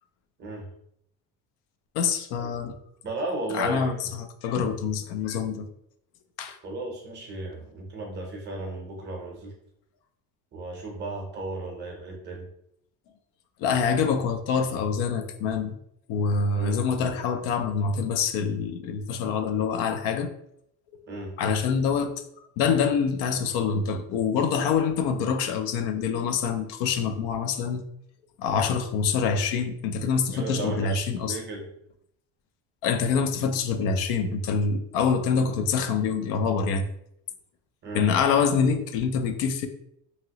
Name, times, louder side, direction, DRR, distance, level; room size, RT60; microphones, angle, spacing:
voice 1, 1.9-2.7 3.5-4.1 4.4-5.7 6.4-6.6 13.6-15.8 16.1-20.3 21.4-22.1 22.6-27.8 28.4-31.4 32.8-36.8 37.9-39.7, left 6 dB, 85° left, 7 dB, 0.5 m, -25 dB
voice 2, 3.0-4.2 6.6-9.5 10.5-12.5 16.5-16.8 21.1-21.4 30.3-31.7 37.8-38.2, right 2 dB, 25° right, 1 dB, 0.5 m, -35 dB
2.9 x 2.8 x 2.8 m, 0.75 s
cardioid pair, 170°, 41 cm